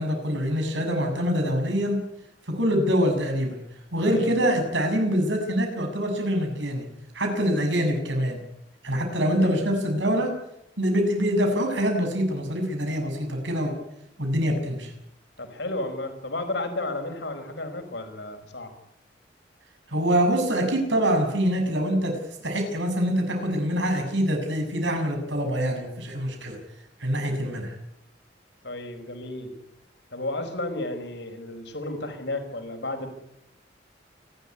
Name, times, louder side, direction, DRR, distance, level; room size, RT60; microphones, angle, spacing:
voice 1, 0.0-2.0 2.5-3.6 3.9-6.8 7.1-8.4 8.8-10.3 10.8-13.7 14.2-14.9 19.9-22.1 22.4-26.6 27.0-27.7, equal, 85° right, 4 dB, 7.3 m, -25 dB
voice 2, 4.0-4.4 9.4-9.7 15.4-18.7 28.6-29.5 30.1-33.1, left 2 dB, 70° left, 6 dB, 5.1 m, -33 dB
29.5 x 13.0 x 9.9 m, 0.81 s
head